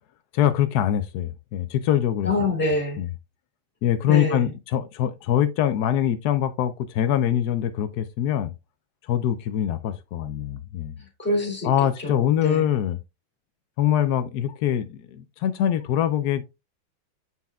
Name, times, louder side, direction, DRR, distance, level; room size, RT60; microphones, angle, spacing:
voice 1, 0.3-2.3 3.0-3.1 3.8-8.5 9.0-10.9 11.6-13.0 13.8-16.4, left 10 dB, 85° left, 0.8 m, -23 dB
voice 2, 2.2-3.0 4.0-4.5 11.2-11.7 12.0-12.7, left 2 dB, 5° left, 2.5 m, -26 dB
7.6 x 5.5 x 2.3 m
omnidirectional pair, 2.3 m